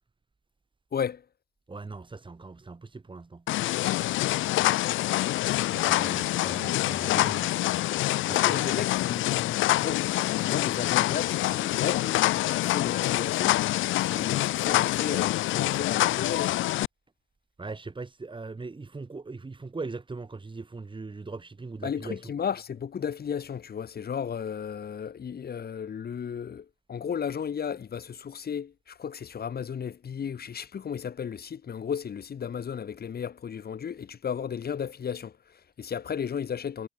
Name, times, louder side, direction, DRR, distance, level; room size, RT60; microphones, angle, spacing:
voice 1, 0.9-1.3 7.0-7.3 8.3-13.6 14.0-16.6 21.8-36.9, left 7 dB, 50° left, 5.4 m, -34 dB
voice 2, 1.7-3.4 5.7-7.5 8.2-8.6 17.6-22.2, right 3 dB, 25° right, 5.6 m, -40 dB
sound 1, 3.5-16.9, left 16 dB, 80° left, 0.5 m, -26 dB
cardioid pair, 90°, 20 cm